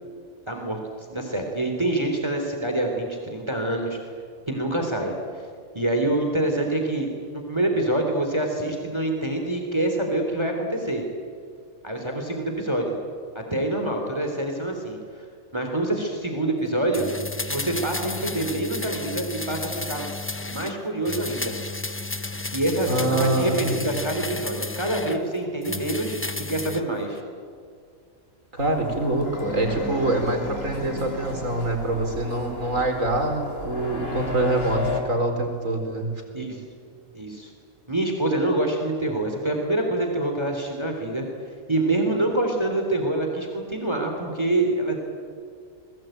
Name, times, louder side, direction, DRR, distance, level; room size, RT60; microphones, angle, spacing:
voice 1, 0.5-4.0 4.5-5.4 5.7-11.0 11.8-13.0 13.4-15.0 15.5-17.1 17.5-20.0 20.4-21.5 22.5-26.2 26.5-27.2 36.3-36.6 37.1-37.5 37.9-41.2 41.7-45.0, right 1 dB, 20° right, 3 dB, 3.4 m, -26 dB
sound 1, 16.9-20.8 21.1-25.2 25.6-26.9 27.2-27.3, left 2 dB, 10° left, 0.6 m, -32 dB
voice 2, 22.9-23.9 28.5-36.1, right 2 dB, 65° right, 3 dB, 4.7 m, -25 dB
sound 2, 28.6-35.0, left 2 dB, 45° left, 3.5 m, -34 dB
sound 3, 29.2-32.1, left 2 dB, 65° left, 3.1 m, -37 dB
29.5 x 21.5 x 9.1 m, 2.1 s
omnidirectional pair, 1.4 m